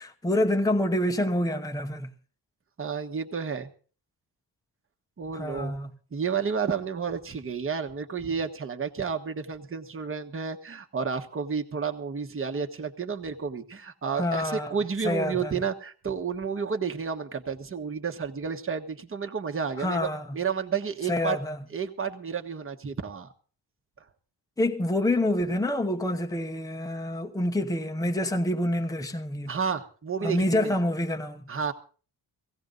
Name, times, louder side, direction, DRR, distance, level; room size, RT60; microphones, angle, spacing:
voice 1, 0.0-2.1 5.3-5.9 14.2-14.7 15.0-15.5 19.8-20.3 21.1-21.6 24.6-29.5 30.2-31.4, left 1 dB, 10° left, 0.9 m, -27 dB
voice 2, 2.8-3.7 5.2-5.8 6.1-21.4 21.7-23.3 29.5-30.8 31.5-31.7, right 6 dB, 30° right, 1.3 m, -31 dB
17.5 x 16.0 x 3.9 m
wide cardioid pair, 170°, 43 cm